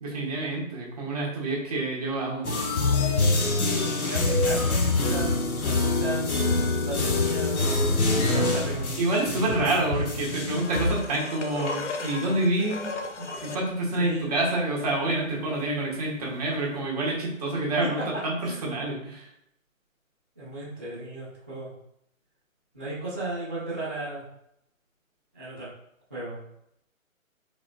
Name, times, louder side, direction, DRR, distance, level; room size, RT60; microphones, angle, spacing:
voice 1, 0.0-2.6 9.0-19.3, right 2 dB, 30° right, -3 dB, 1.7 m, -28 dB
sound 1, 2.4-10.9, left 2 dB, 90° left, 1.5 m, -25 dB
voice 2, 3.8-6.3 6.8-9.1 9.3-9.7 14.0-14.3 17.8-18.7 20.4-21.7 22.7-24.2 25.3-25.7 26.1-26.4, right 2 dB, 10° right, -16 dB, 0.7 m, -35 dB
sound 2, 10.1-13.7 16.6-16.7, left 4 dB, 55° left, 0.9 m, -36 dB
8.5 x 5.0 x 2.3 m, 0.76 s
hypercardioid pair, 165°, 42 cm